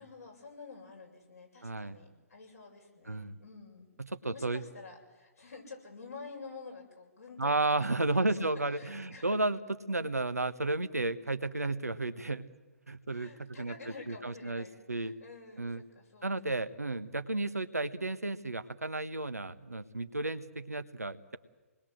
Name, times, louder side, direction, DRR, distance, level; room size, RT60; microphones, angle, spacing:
voice 1, 0.0-3.9 4.3-9.4 13.1-16.8, left 4 dB, 80° left, -1 dB, 7.5 m, -49 dB
voice 2, 1.6-2.0 3.1-3.4 4.0-4.6 7.4-9.6 9.9-12.5 12.9-13.7 14.1-15.1 15.6-15.8 16.2-21.4, right 2 dB, 90° right, 9 dB, 1.3 m, -33 dB
27.5 x 20.5 x 7.7 m, 1.2 s
figure-of-eight pair, 130°, 8 cm